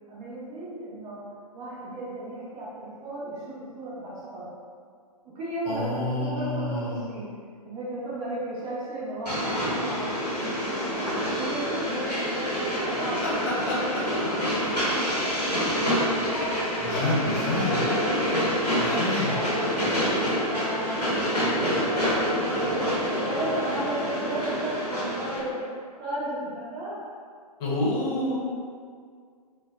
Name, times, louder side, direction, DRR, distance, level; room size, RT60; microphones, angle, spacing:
voice 1, 0.1-1.2 1.5-4.4 5.2-7.3 7.6-13.2 13.8-14.4 14.8-15.5 17.0-17.4 18.3-22.9 23.2-25.6 26.0-27.0, right 1 dB, 30° right, -9 dB, 0.9 m, -35 dB
voice 2, 5.7-7.0 13.7-13.8 16.8-17.8 18.8-19.3 27.6-28.3, left 2 dB, 40° left, -7 dB, 0.8 m, -28 dB
Train, 9.3-25.4, equal, 90° left, 0.8 m, -27 dB
2.6 x 2.1 x 2.3 m, 2.1 s
figure-of-eight pair, 110°, 20 cm